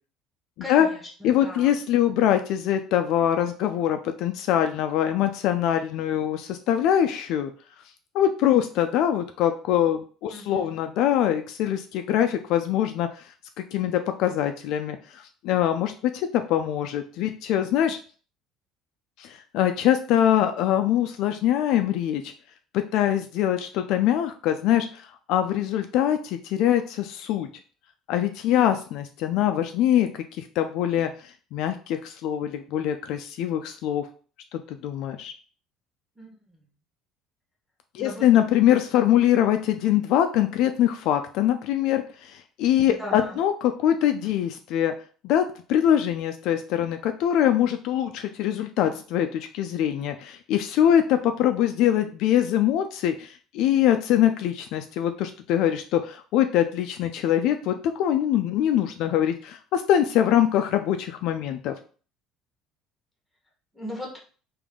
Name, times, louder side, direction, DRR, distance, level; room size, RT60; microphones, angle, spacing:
voice 1, 0.6-1.7 10.3-10.7 36.2-36.6 38.0-38.2 42.8-43.4 63.7-64.1, left 1 dB, 5° left, -1 dB, 1.0 m, -38 dB
voice 2, 1.2-7.5 8.1-13.1 13.7-18.0 19.2-22.3 22.7-27.5 28.1-34.1 34.5-35.3 37.9-44.9 45.2-61.7, left 11 dB, 60° left, 7 dB, 0.3 m, -23 dB
3.5 x 2.5 x 3.6 m, 0.40 s
cardioid pair, 165°, 0 cm